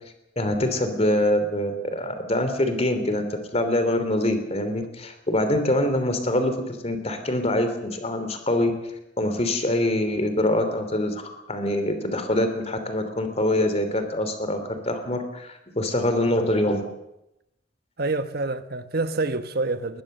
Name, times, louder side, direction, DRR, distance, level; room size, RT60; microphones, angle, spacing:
voice 1, 0.4-3.2 3.5-8.7 9.2-11.2 11.5-16.8, left 1 dB, 35° left, 3.1 m, -24 dB
voice 2, 18.0-20.0, right 3 dB, 55° right, 1.2 m, -27 dB
21.0 x 20.5 x 6.7 m
head